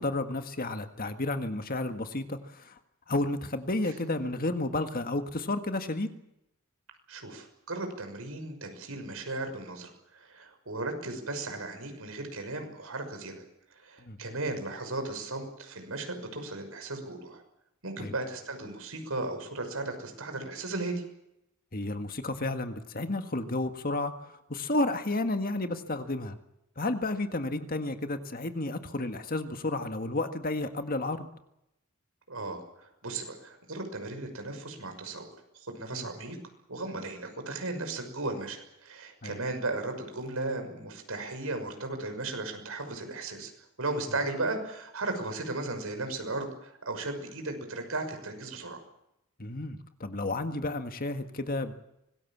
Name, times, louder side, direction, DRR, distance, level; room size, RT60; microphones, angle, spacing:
voice 1, 0.0-2.8 3.1-6.1 14.0-14.2 18.0-18.1 21.7-26.4 26.8-31.3 35.9-36.1 39.2-39.4 49.4-51.7, left 2 dB, 45° left, 7 dB, 1.8 m, -32 dB
voice 2, 7.1-13.4 13.7-17.4 17.8-21.0 32.3-36.4 36.7-43.5 43.8-48.8, right 2 dB, 75° right, 6 dB, 5.8 m, -36 dB
25.0 x 20.0 x 7.4 m, 0.83 s
head